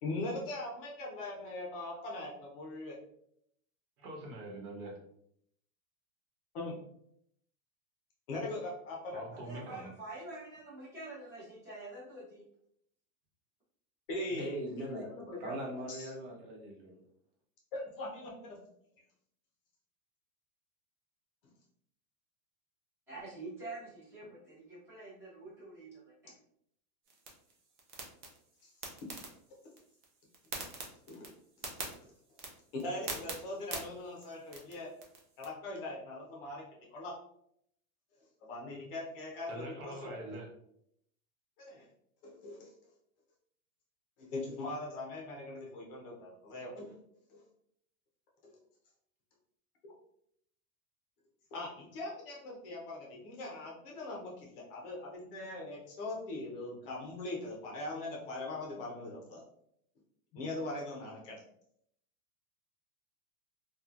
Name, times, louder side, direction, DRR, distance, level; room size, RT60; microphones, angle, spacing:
voice 1, 0.0-3.0 6.5-6.8 8.3-9.3 14.1-14.6 15.0-16.1 17.7-18.6 31.1-31.3 31.9-32.0 32.7-34.9 35.4-36.6 36.9-37.1 38.4-40.2 41.6-41.9 42.2-42.7 44.2-46.9 47.3-47.4 48.4-48.6 49.8-49.9 51.5-59.4 60.3-61.4, left 2 dB, 40° left, -2 dB, 0.7 m, -41 dB
voice 2, 4.0-5.0 9.1-9.9 39.5-40.5, right 1 dB, 75° right, 0 dB, 1.1 m, -44 dB
voice 3, 9.3-12.4 23.1-26.3, right 2 dB, 5° right, -11 dB, 0.9 m, -47 dB
voice 4, 14.3-15.0 15.4-17.0, equal, 50° right, -2 dB, 0.9 m, -40 dB
sound 1, 27.1-35.5, right 3 dB, 35° right, 0.4 m, -46 dB
2.9 x 2.3 x 2.4 m, 0.72 s
supercardioid pair, 165°, 45 cm